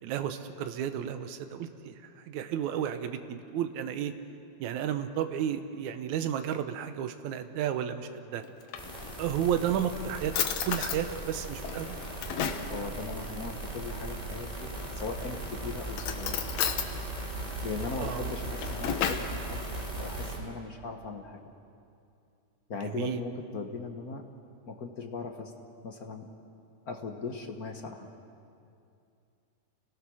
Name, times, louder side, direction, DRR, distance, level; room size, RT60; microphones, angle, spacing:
voice 1, 0.0-4.1 4.6-8.4 9.2-10.4 10.7-12.0 18.0-18.3 22.8-23.2, right 9 dB, 80° right, 8 dB, 2.3 m, -32 dB
Drawer open or close, 8.4-9.4 9.9-10.0 10.3-11.0 11.6-12.7 14.6-15.2 15.9-16.9 18.3-19.4, left 8 dB, 70° left, 2.3 m, -33 dB
sound 1, 8.7-20.4, right 2 dB, 10° right, 3.5 m, -38 dB
voice 2, 12.7-16.4 17.6-21.4 22.7-24.2 24.7-25.5 25.8-26.3 26.9-28.1, left 4 dB, 50° left, 3 dB, 1.1 m, -39 dB
29.5 x 18.0 x 6.3 m, 2.5 s
omnidirectional pair, 3.4 m